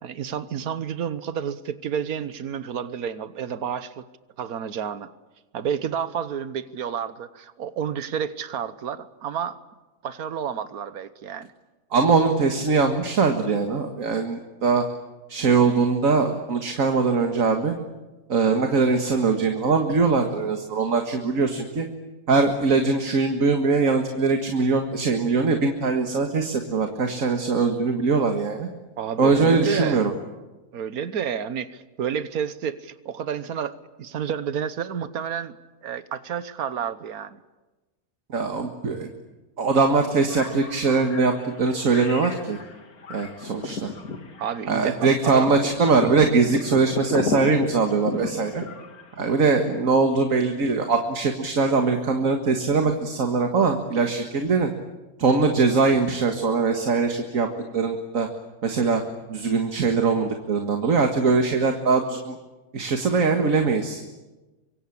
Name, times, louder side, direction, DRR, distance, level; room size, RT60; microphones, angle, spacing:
voice 1, 0.0-4.0 4.4-5.1 5.5-9.6 10.0-11.5 29.0-30.0 30.7-35.5 35.8-37.4 44.4-45.5, right 8 dB, 85° right, 13 dB, 1.5 m, -30 dB
voice 2, 11.9-14.8 15.3-17.7 18.3-21.9 22.3-28.7 29.2-30.1 38.3-39.1 39.6-42.6 43.1-43.9 44.7-48.6 49.2-54.7 55.2-57.5 57.7-58.3 58.6-59.0 59.3-62.4 62.7-64.0, right 4 dB, 65° right, 5 dB, 2.1 m, -22 dB
sound 1, 40.3-49.7, left 3 dB, 85° left, 2.5 m, -34 dB
25.0 x 23.5 x 8.6 m, 1.1 s
omnidirectional pair, 1.5 m